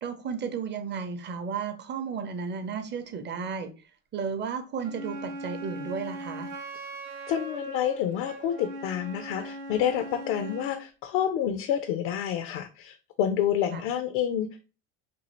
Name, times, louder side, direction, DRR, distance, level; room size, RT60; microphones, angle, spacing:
voice 1, 0.0-3.7 4.1-6.5 13.7-13.8, right 6 dB, 30° right, 0.5 m, -33 dB
Wind instrument woodwind instrument, 4.8-10.8, right 1 dB, 75° right, 0.8 m, -40 dB
voice 2, 7.3-14.6, left 9 dB, 70° left, 0.5 m, -28 dB
2.7 x 2.4 x 3.0 m
hypercardioid pair, 75°, 37 cm